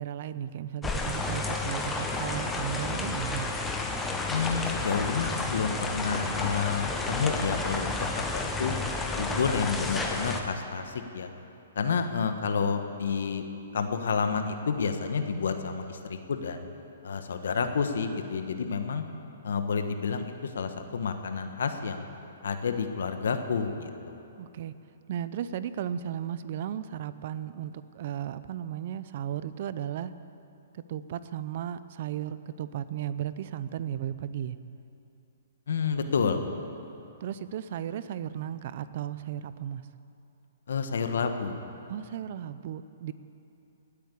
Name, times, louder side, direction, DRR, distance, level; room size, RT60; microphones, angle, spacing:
voice 1, 0.0-3.5 24.4-24.7 25.1-30.1 30.7-34.6 37.2-39.9 41.9-43.1, right 10 dB, 50° right, 14 dB, 0.7 m, -35 dB
sound 1, 0.8-10.4, left 3 dB, 10° left, 1.2 m, -31 dB
voice 2, 4.3-8.7 9.2-11.3 11.7-13.5 13.7-16.6 17.0-19.0 19.4-22.0 22.4-24.2 35.7-36.4 40.7-41.6, left 5 dB, 75° left, 7 dB, 1.4 m, -30 dB
19.0 x 8.6 x 8.5 m, 2.7 s
hypercardioid pair, 145°, 0 cm